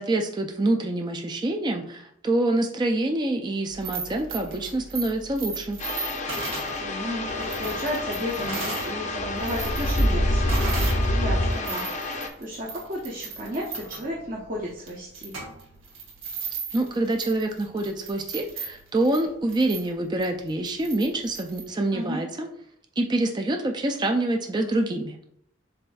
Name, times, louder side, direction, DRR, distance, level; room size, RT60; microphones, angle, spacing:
voice 1, 0.0-5.8 16.7-22.5 23.0-25.2, right 2 dB, 20° right, 3 dB, 0.3 m, -26 dB
sound 1, 3.7-8.9 9.3-11.1 11.4-21.7, right 4 dB, 75° right, 1.1 m, -37 dB
sound 2, 5.8-12.3, left 1 dB, 35° left, 0.5 m, -26 dB
voice 2, 6.8-15.4 21.9-22.2, equal, 40° right, -3 dB, 0.7 m, -33 dB
7.4 x 2.5 x 2.3 m, 0.71 s
head